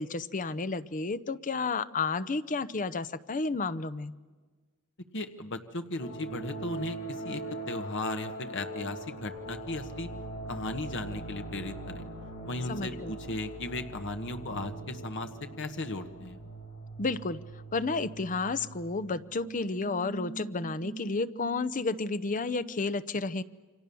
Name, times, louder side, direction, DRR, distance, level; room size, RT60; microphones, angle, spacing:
voice 1, 0.0-4.1 12.7-13.2 17.0-17.4 17.7-23.4, left 3 dB, 35° left, 14 dB, 0.7 m, -31 dB
voice 2, 5.1-7.4 7.7-10.1 10.5-12.0 12.4-15.3 15.6-16.4, left 2 dB, 55° left, 7 dB, 1.4 m, -36 dB
sound 1, 6.0-22.7, right 2 dB, 75° left, 6.8 m, -42 dB
29.0 x 25.0 x 7.0 m, 1.4 s
head